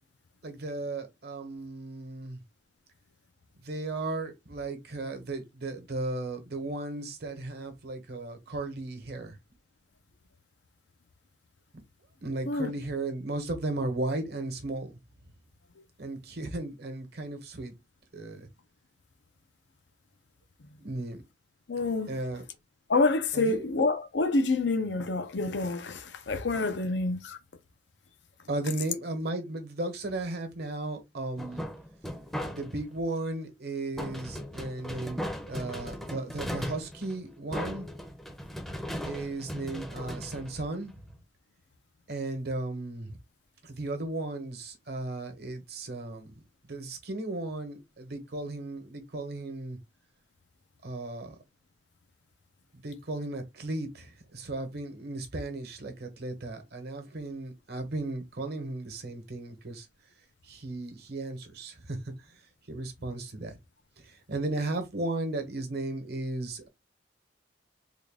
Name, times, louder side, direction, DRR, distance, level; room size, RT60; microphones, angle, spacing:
voice 1, 0.4-2.4 3.6-9.4 11.7-11.8 12.2-15.0 16.0-17.8 18.1-18.5 20.8-21.2 22.1-22.4 23.3-23.6 28.5-31.7 32.4-37.9 39.0-40.9 42.1-43.2 43.6-46.3 46.7-49.8 50.8-51.4 52.7-59.9 60.4-62.4 62.7-63.6 64.0-66.7, right 2 dB, 65° right, 1.1 m, -35 dB
voice 2, 21.7-22.2 22.9-27.4, left 3 dB, 80° left, 0.7 m, -27 dB
sound 1, 31.4-32.9 34.0-41.1, equal, ahead, 0.6 m, -38 dB
3.7 x 2.3 x 3.6 m
head